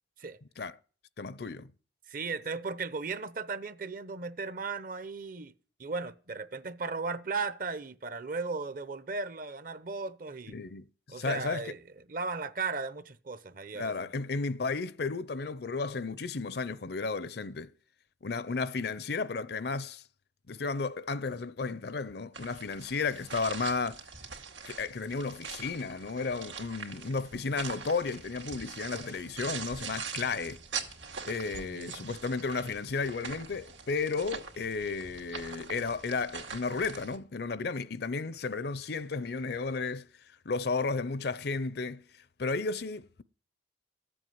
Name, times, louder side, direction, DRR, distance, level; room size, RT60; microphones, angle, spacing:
voice 1, 1.2-1.7 10.5-11.7 13.7-17.7 18.2-20.0 20.5-24.0 24.7-30.6 31.3-40.1 40.5-42.0 42.4-43.2, left 4 dB, 55° left, 0.6 m, -33 dB
voice 2, 2.1-5.5 5.8-10.5 11.1-11.8 12.1-14.1 31.5-32.1, right 4 dB, 45° right, 0.8 m, -36 dB
sound 1, 22.3-37.2, right 6 dB, 85° right, 2.4 m, -43 dB
14.5 x 7.9 x 9.4 m
head